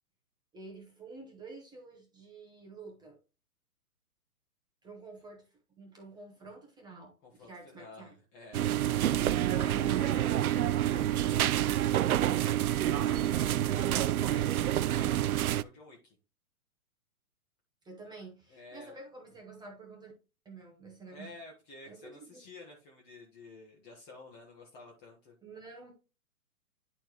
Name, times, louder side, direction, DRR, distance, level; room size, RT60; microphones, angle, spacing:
voice 1, 0.5-3.2 4.8-8.1 9.5-10.7 17.8-20.1 20.4-21.3 21.9-22.4 25.4-25.9, right 3 dB, 10° right, 0 dB, 1.1 m, -49 dB
voice 2, 7.2-8.7 9.5-11.6 12.8-16.2 18.5-19.0 21.1-25.3, left 2 dB, 20° left, -1 dB, 1.3 m, -51 dB
sound 1, 8.5-15.6, right 12 dB, 70° right, 0.5 m, -28 dB
10.5 x 4.5 x 3.0 m, 0.32 s
hypercardioid pair, 130°, 45 cm